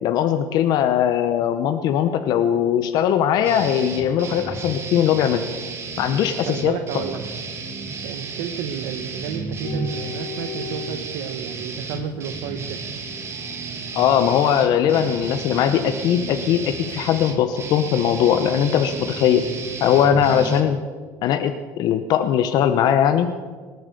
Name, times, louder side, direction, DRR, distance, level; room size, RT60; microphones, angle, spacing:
voice 1, 0.0-5.4 6.0-7.0 13.9-19.5 19.8-20.8 21.2-23.3, left 9 dB, 60° left, 9 dB, 0.8 m, -20 dB
sound 1, 3.4-20.6, right 4 dB, 35° right, 2.2 m, -32 dB
voice 2, 6.5-7.2 8.0-12.8, right 9 dB, 80° right, 7 dB, 1.1 m, -32 dB
sound 2, 9.6-20.0, left 4 dB, 90° left, 4.1 m, -42 dB
19.0 x 9.5 x 6.9 m, 1.5 s
supercardioid pair, 110°, 8 cm